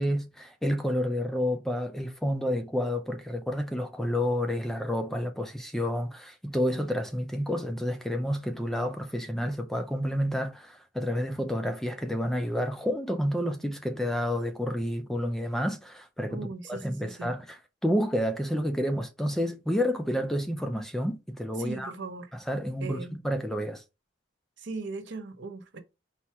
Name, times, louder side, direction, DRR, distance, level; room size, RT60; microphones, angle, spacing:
voice 1, 0.0-21.9 22.3-23.8, equal, ahead, 0.4 m, -30 dB
voice 2, 16.3-17.3 21.6-22.3 22.8-23.2 24.6-25.8, right 4 dB, 60° right, 0.7 m, -39 dB
4.3 x 2.1 x 4.5 m
head